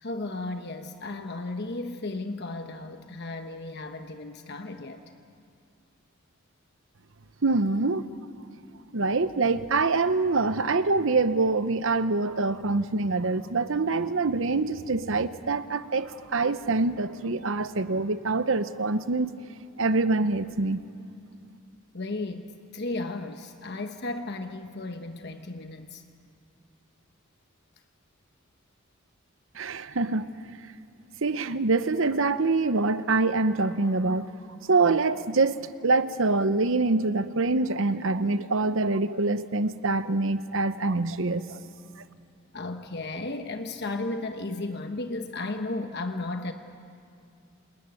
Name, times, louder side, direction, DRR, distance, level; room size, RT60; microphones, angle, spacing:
voice 1, 0.0-5.0 21.9-26.0 42.5-46.5, left 2 dB, 50° left, 6 dB, 1.1 m, -34 dB
voice 2, 7.4-8.1 8.9-19.3 19.8-20.8 29.5-30.3 31.2-34.3 34.7-41.6, right 3 dB, 65° right, 12 dB, 0.9 m, -25 dB
29.5 x 21.0 x 9.2 m, 2.4 s
head